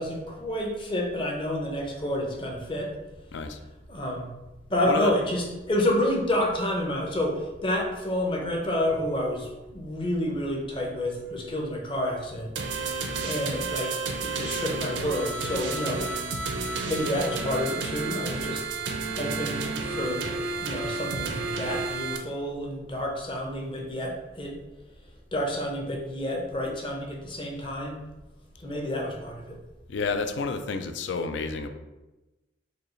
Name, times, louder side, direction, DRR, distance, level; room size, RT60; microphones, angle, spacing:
voice 1, 0.0-2.9 3.9-4.3 4.7-12.5 12.9-16.2 16.8-18.6 19.2-20.3 20.6-24.6 25.3-28.1 28.6-29.6, left 1 dB, 25° left, 0 dB, 0.6 m, -29 dB
voice 2, 4.8-5.1 29.9-31.7, left 4 dB, 75° left, 8 dB, 0.4 m, -30 dB
sound 1, 12.6-22.2, right 4 dB, 75° right, 0.5 m, -31 dB
4.9 x 2.3 x 3.1 m, 1.1 s
head